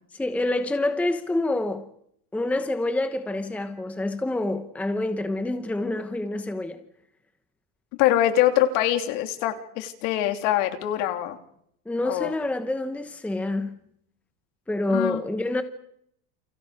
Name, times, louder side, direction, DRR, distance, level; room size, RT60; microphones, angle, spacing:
voice 1, 0.1-1.9 2.3-6.8 11.9-13.8 14.7-15.6, left 2 dB, 5° left, 1.0 m, -27 dB
voice 2, 8.0-11.4 12.0-12.3 14.9-15.2, left 12 dB, 60° left, 3.3 m, -23 dB
29.5 x 28.5 x 5.1 m
cardioid pair, 160°, 44 cm